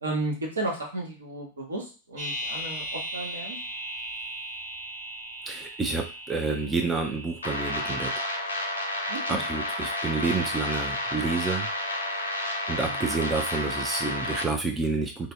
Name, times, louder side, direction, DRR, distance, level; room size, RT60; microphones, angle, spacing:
voice 1, 0.0-3.6 9.1-9.5 12.8-13.0, right 2 dB, 75° right, -1 dB, 1.0 m, -33 dB
sound 1, 2.2-8.1, right 1 dB, 45° right, 1.1 m, -37 dB
voice 2, 5.5-8.1 9.3-11.7 12.0-12.2 12.7-15.3, right 3 dB, 15° right, 4 dB, 0.4 m, -29 dB
sound 2, 7.4-14.4, left 1 dB, 75° left, 0.5 m, -31 dB
2.6 x 2.1 x 3.2 m, 0.32 s
figure-of-eight pair, 90°, 0 cm